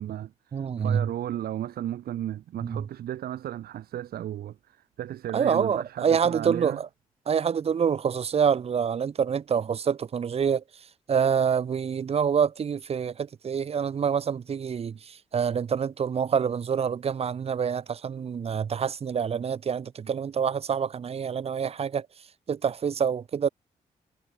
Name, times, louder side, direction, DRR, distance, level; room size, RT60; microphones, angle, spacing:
voice 1, 0.0-4.6 5.0-6.8, right 11 dB, 75° right, 0.7 m, -34 dB
voice 2, 0.5-1.1 2.6-2.8 5.3-6.9 7.3-10.6 11.1-22.1 22.5-23.5, right 7 dB, 40° right, 0.4 m, -26 dB
supercardioid pair, 50°, 16 cm